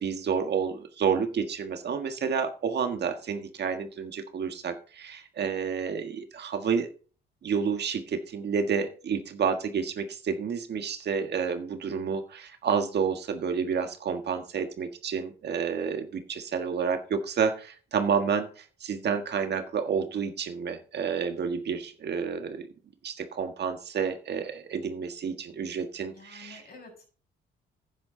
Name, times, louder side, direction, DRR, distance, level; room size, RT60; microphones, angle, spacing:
voice 1, 0.0-6.9 7.4-22.7 23.0-26.6, right 6 dB, 60° right, 6 dB, 1.6 m, -30 dB
voice 2, 26.2-27.1, left 3 dB, 50° left, 2 dB, 6.9 m, -49 dB
10.5 x 9.5 x 3.9 m, 0.39 s
cardioid pair, 90°, 20 cm